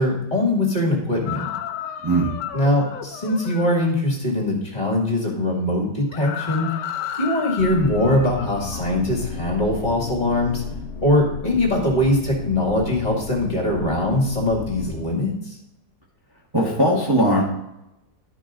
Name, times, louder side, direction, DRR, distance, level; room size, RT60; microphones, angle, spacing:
voice 1, 0.0-1.4 2.5-6.7 7.2-10.6 11.0-15.6, left 1 dB, 25° left, -1 dB, 2.3 m, -22 dB
sound 1, 1.3-3.8 6.1-9.0, left 10 dB, 85° left, 1.3 m, -33 dB
sound 2, 7.6-15.0, left 4 dB, 50° left, 1.0 m, -34 dB
voice 2, 16.5-17.4, right 1 dB, 15° right, -4 dB, 1.5 m, -19 dB
12.0 x 5.4 x 3.9 m, 0.86 s
omnidirectional pair, 1.8 m